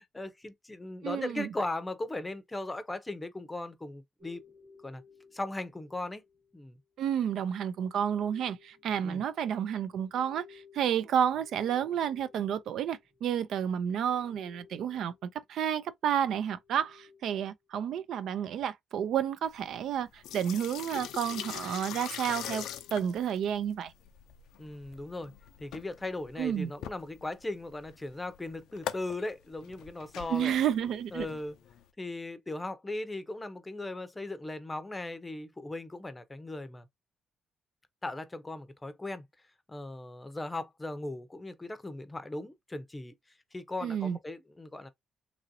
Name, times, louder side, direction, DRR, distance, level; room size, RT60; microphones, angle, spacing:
voice 1, 0.0-4.4 4.8-5.0 5.3-6.2 6.5-6.8 9.0-9.2 24.6-25.3 25.6-30.5 31.1-31.6 32.0-36.9 38.0-39.2 39.7-43.1 43.5-44.9, left 2 dB, 15° left, 0.6 m, -38 dB
voice 2, 1.0-1.5 7.0-22.6 22.9-23.9 26.4-26.7 30.3-31.3 43.8-44.2, right 9 dB, 75° right, 0.3 m, -31 dB
sound 1, 4.2-6.6 7.6-13.6 13.9-15.4 16.3-17.4, left 6 dB, 45° right, 0.9 m, -58 dB
sound 2, 19.4-31.9, left 10 dB, 85° left, 0.4 m, -43 dB
2.9 x 2.5 x 2.6 m
cardioid pair, 90°, 0 cm